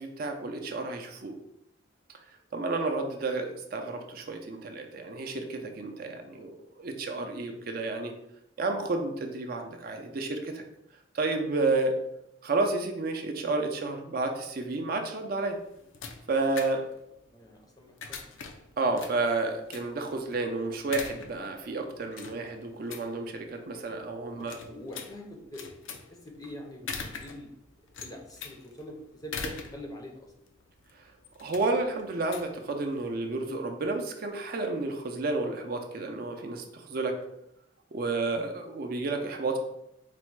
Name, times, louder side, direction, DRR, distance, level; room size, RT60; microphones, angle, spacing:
voice 1, 0.0-1.3 2.5-8.1 8.6-10.6 11.1-12.0 12.4-15.6 16.3-16.9 18.8-24.6 31.4-37.1 37.9-39.6, right 3 dB, 45° right, 4 dB, 0.4 m, -31 dB
sound 1, 15.3-33.3, left 5 dB, 80° left, 0.5 m, -44 dB
voice 2, 17.3-18.3 24.4-25.6 26.1-27.5 28.0-30.3, left 1 dB, 20° left, 1 dB, 0.5 m, -44 dB
4.0 x 2.1 x 4.5 m, 0.82 s
head